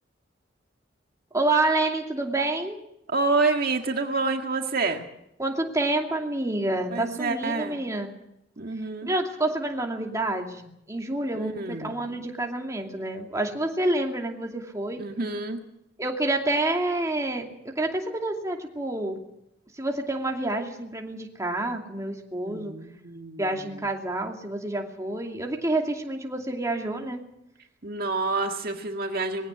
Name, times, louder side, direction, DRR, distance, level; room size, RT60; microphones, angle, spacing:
voice 1, 1.3-2.8 5.4-8.1 9.0-15.0 16.0-17.5 17.8-19.2 19.7-22.7 23.4-27.2, right 2 dB, 15° right, 1 dB, 2.6 m, -28 dB
voice 2, 3.1-5.1 6.9-7.8 8.6-9.1 11.3-12.0 15.0-15.6 22.4-23.4 27.8-29.5, right 3 dB, 55° right, 4 dB, 1.9 m, -28 dB
21.0 x 16.5 x 8.1 m, 0.81 s
head